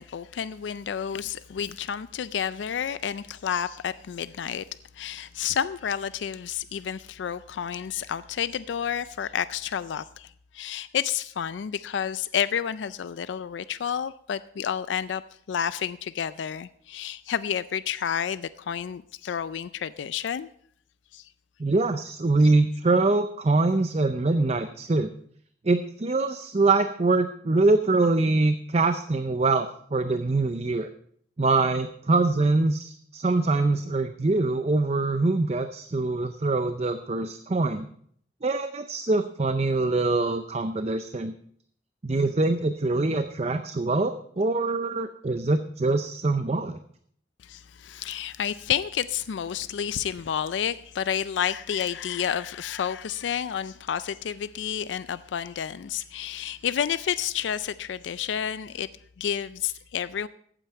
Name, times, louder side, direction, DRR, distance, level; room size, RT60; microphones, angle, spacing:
voice 1, 0.0-4.6 4.9-15.2 15.5-20.5 21.1-21.3 22.4-22.5 47.4-58.9 59.2-60.3, left 8 dB, 85° left, 15 dB, 0.4 m, -30 dB
voice 2, 21.6-25.1 25.6-30.9 31.4-37.9 38.4-41.3 42.0-46.8, right 3 dB, 35° right, 9 dB, 0.5 m, -24 dB
14.5 x 9.0 x 4.5 m, 0.63 s
head